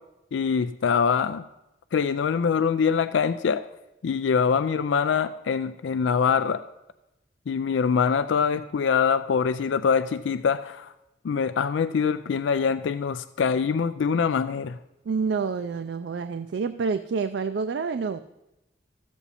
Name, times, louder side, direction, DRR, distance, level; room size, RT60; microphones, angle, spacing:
voice 1, 0.3-1.5 1.9-3.7 4.0-6.6 7.5-10.9 11.2-14.8, left 6 dB, 85° left, 11 dB, 0.4 m, -24 dB
voice 2, 15.1-18.2, right 5 dB, 70° right, 10 dB, 0.4 m, -28 dB
14.0 x 7.3 x 4.2 m, 0.94 s
head